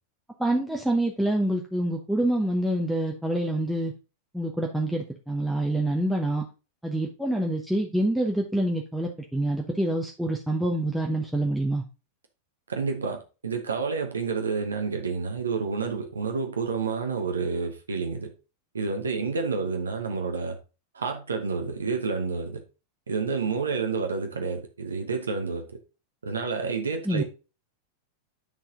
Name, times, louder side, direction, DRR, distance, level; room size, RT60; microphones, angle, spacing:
voice 1, 0.4-3.9 4.3-6.4 6.8-11.8 27.0-27.2, right 1 dB, ahead, 0.9 m, -26 dB
voice 2, 12.7-18.3 18.7-20.6 20.9-22.6 23.1-25.7 26.2-27.2, right 4 dB, 70° right, 1.0 m, -29 dB
9.2 x 4.2 x 3.8 m
figure-of-eight pair, 90°, 0 cm